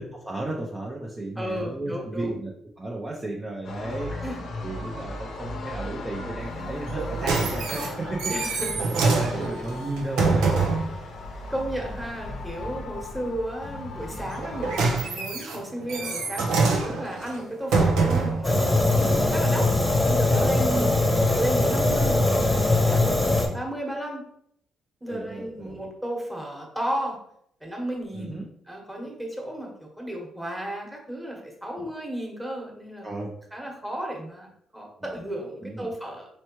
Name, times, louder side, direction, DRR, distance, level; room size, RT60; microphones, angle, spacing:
voice 1, 0.0-2.5 2.8-4.2 4.6-8.3 8.8-10.5 20.6-20.9 25.1-25.8 28.1-28.4 31.8-31.9 33.0-33.3 35.6-35.9, right 2 dB, 20° right, -3 dB, 0.7 m, -34 dB
voice 2, 1.4-2.4 4.1-4.5 8.3-8.7 9.3-9.4 11.5-21.1 21.3-24.3 25.0-27.2 27.6-28.4 28.7-33.1 33.5-36.3, right 1 dB, 5° right, 0 dB, 1.3 m, -34 dB
sound 1, 3.6-15.0, left 2 dB, 65° left, 0.7 m, -37 dB
sound 2, 6.9-10.9 14.3-18.5 19.2-19.3, right 4 dB, 85° right, 0.7 m, -25 dB
Fire, 18.4-23.5, left 2 dB, 15° left, 1.0 m, -21 dB
4.4 x 3.1 x 3.0 m, 0.69 s
cardioid pair, 90°, 0 cm